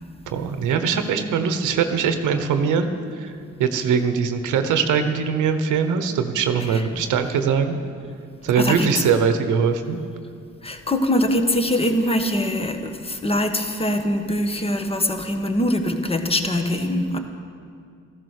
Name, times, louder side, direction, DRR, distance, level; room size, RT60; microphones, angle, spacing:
voice 1, 0.3-3.3 3.6-7.8 8.4-10.0, right 6 dB, 80° right, 8 dB, 1.1 m, -21 dB
voice 2, 6.6-7.0 8.5-8.9 10.6-17.2, left 1 dB, 20° left, 6 dB, 1.4 m, -23 dB
14.5 x 12.5 x 6.6 m, 2.3 s
cardioid pair, 90°, 30 cm